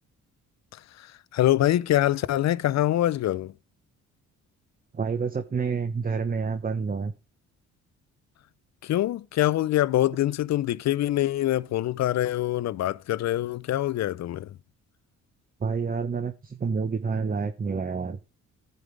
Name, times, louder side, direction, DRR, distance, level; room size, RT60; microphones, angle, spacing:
voice 1, 1.3-3.5 8.8-14.5, left 13 dB, 60° left, 0.6 m, -24 dB
voice 2, 4.9-7.1 15.6-18.2, right 5 dB, 30° right, 1.0 m, -28 dB
15.0 x 5.3 x 3.3 m
cardioid pair, 90°, 30 cm